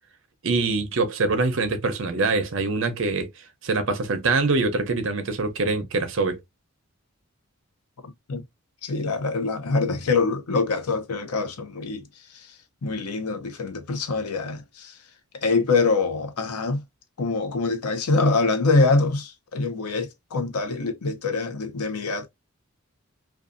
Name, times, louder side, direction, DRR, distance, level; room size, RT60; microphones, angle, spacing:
voice 1, 0.4-3.3 3.6-6.4, right 3 dB, 60° right, 0.6 m, -24 dB
voice 2, 8.8-12.0 12.3-12.5 12.8-14.9 15.4-16.8 17.2-22.3, left 3 dB, 90° left, 0.6 m, -24 dB
2.6 x 2.3 x 2.4 m
head